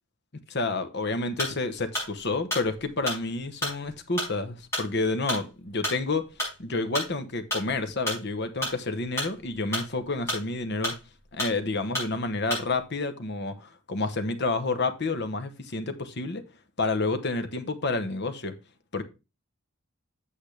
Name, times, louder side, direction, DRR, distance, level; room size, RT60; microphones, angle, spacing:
voice 1, 0.5-6.2 6.6-10.9 11.3-16.4 16.8-18.5 18.9-19.0, left 3 dB, 50° left, 1.0 m, -29 dB
sound 1, 1.3-1.6 1.9-7.1 7.5-8.8 9.1-10.6 10.8-11.6 11.9-12.1 12.5-12.7, left 1 dB, 10° left, 5.6 m, -31 dB
8.4 x 7.3 x 3.3 m
head